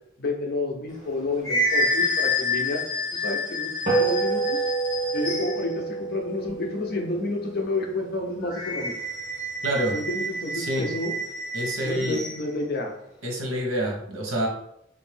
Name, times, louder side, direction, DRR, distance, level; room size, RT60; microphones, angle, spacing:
voice 1, 0.2-2.8 3.1-3.7 4.0-4.6 5.1-8.9 9.9-11.1 11.8-12.9, left 2 dB, 50° left, 1 dB, 0.7 m, -30 dB
sound 1, 0.9-5.7 8.4-12.4, left 2 dB, 20° left, 1.4 m, -29 dB
sound 2, 3.9-8.5, right 4 dB, 35° right, 0.9 m, -28 dB
voice 2, 9.6-10.0 10.5-10.9 11.5-12.2 13.2-14.5, right 1 dB, 85° right, 0 dB, 1.0 m, -27 dB
3.2 x 2.6 x 3.3 m, 0.77 s
head